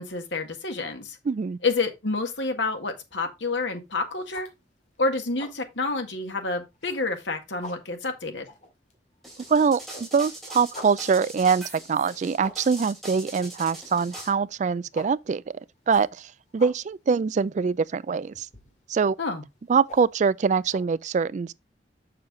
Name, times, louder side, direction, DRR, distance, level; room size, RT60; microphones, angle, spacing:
voice 1, 0.0-1.2 1.6-4.5 5.0-8.5 19.2-19.4, left 3 dB, 85° left, 1.8 m, -28 dB
voice 2, 1.3-1.6 9.5-15.6 15.9-18.5 18.9-19.2 19.7-21.5, right 5 dB, 40° right, 0.3 m, -24 dB
sound 1, 3.6-3.9 4.2-5.0 5.2-5.7 6.0-6.1 6.6-7.3 7.5-9.5 9.8-20.8, left 1 dB, 40° left, 2.4 m, -46 dB
sound 2, 9.2-14.3, right 1 dB, ahead, 3.5 m, -41 dB
7.1 x 6.7 x 3.7 m
head